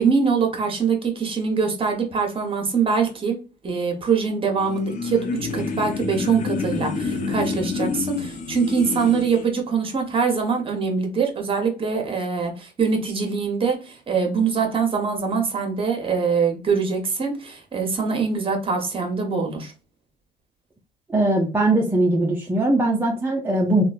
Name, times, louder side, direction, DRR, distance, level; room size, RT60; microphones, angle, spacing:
voice 1, 0.0-3.4 3.6-5.3 5.5-19.7, right 5 dB, 30° right, 1.0 m, -23 dB
sound 1, 4.6-9.4, left 4 dB, 45° left, 0.6 m, -28 dB
voice 2, 21.1-23.8, right 2 dB, 10° right, 0.5 m, -20 dB
3.0 x 2.3 x 2.4 m
cardioid pair, 110°, 17 cm